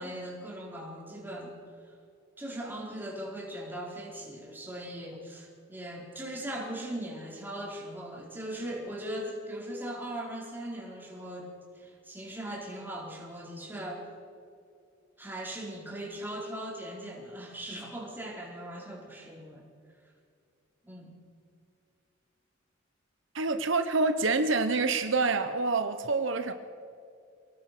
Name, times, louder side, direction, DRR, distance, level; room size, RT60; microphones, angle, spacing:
voice 1, 0.0-1.5 2.4-11.5 11.7-14.0 15.2-19.6 20.8-21.1, right 1 dB, 10° right, -3 dB, 4.7 m, -39 dB
voice 2, 23.3-26.5, right 3 dB, 70° right, 8 dB, 1.0 m, -27 dB
25.5 x 18.5 x 6.1 m, 2.4 s
head